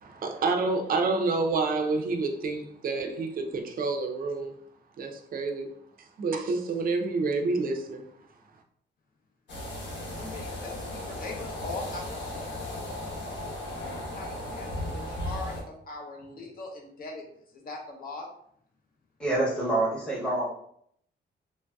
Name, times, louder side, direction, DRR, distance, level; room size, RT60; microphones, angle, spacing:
voice 1, 0.0-4.5 5.0-5.7 6.2-8.0, right 3 dB, 50° right, 3 dB, 0.4 m, -28 dB
sound 1, 9.5-15.6, left 1 dB, 70° left, 0.9 m, -36 dB
voice 2, 10.2-12.6 14.1-17.2 17.5-18.3, left 3 dB, 50° left, 0 dB, 0.6 m, -41 dB
voice 3, 19.2-20.4, right 2 dB, 5° left, -6 dB, 0.8 m, -26 dB
3.2 x 2.6 x 2.2 m, 0.67 s
wide cardioid pair, 160°, 19 cm